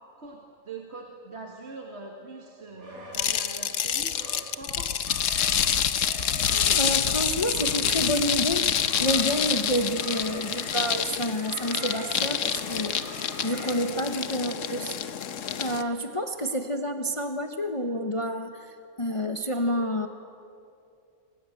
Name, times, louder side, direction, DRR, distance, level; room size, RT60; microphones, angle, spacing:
voice 1, 0.2-4.2 4.6-4.9, right 3 dB, 50° right, 1 dB, 2.2 m, -42 dB
sound 1, 2.7-3.3 4.1-4.4 5.1-6.9 7.5-8.4 8.8-10.7 11.4-13.8, right 2 dB, 80° right, 4.8 m, -43 dB
sound 2, 3.1-15.8, left 8 dB, 65° left, 1.2 m, -27 dB
voice 2, 6.5-8.7 9.0-14.9 15.6-20.1, equal, 25° left, 6 dB, 1.0 m, -29 dB
27.0 x 19.0 x 9.0 m, 2.5 s
omnidirectional pair, 1.5 m